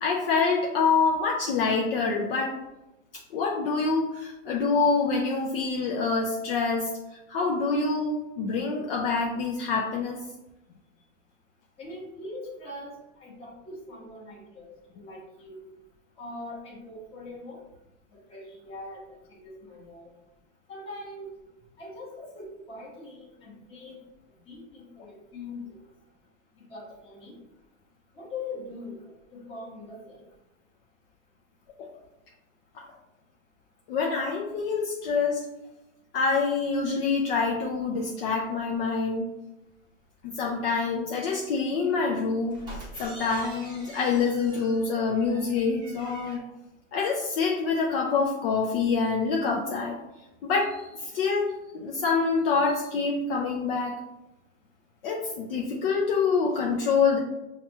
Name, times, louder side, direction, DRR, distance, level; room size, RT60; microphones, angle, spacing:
voice 1, 0.0-2.6 3.3-6.9 7.3-10.2 31.8-31.9 32.7-32.8 33.9-35.5 36.1-39.3 40.2-42.6 43.0-46.4 46.9-50.0 50.4-54.0 55.0-57.2, left 4 dB, 50° left, 0 dB, 0.5 m, -26 dB
voice 2, 11.8-15.6 16.2-17.6 18.3-20.1 20.7-21.3 21.8-24.0 24.5-25.6 26.6-27.4 28.2-29.0 29.3-30.2, left 2 dB, 15° left, -5 dB, 0.9 m, -42 dB
sound 1, 42.5-46.4, right 1 dB, 10° right, 0.7 m, -45 dB
5.6 x 2.3 x 2.8 m, 0.97 s
supercardioid pair, 155°, 39 cm